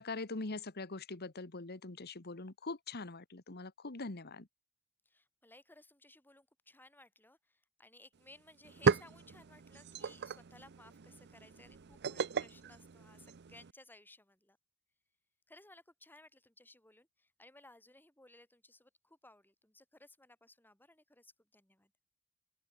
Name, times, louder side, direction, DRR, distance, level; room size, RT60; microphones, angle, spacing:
voice 1, 0.0-4.5, left 3 dB, 50° left, 1.5 m, -43 dB
voice 2, 5.0-14.6 15.5-21.9, left 2 dB, 10° left, 6.7 m, -60 dB
sound 1, 8.1-8.2 8.5-13.7, right 5 dB, 50° right, 0.6 m, -36 dB
open air
head